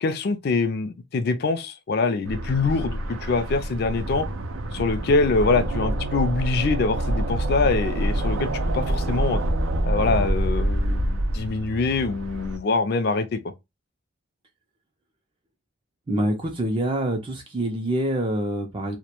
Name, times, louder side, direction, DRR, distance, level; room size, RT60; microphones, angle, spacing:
voice 1, 0.0-4.3 4.7-9.4 9.9-13.4, left 3 dB, 50° left, 0.3 m, -24 dB
sound 1, 2.3-12.6, right 1 dB, 85° right, 0.5 m, -26 dB
voice 2, 16.1-19.0, right 1 dB, 25° right, 0.3 m, -26 dB
2.2 x 2.1 x 2.8 m
head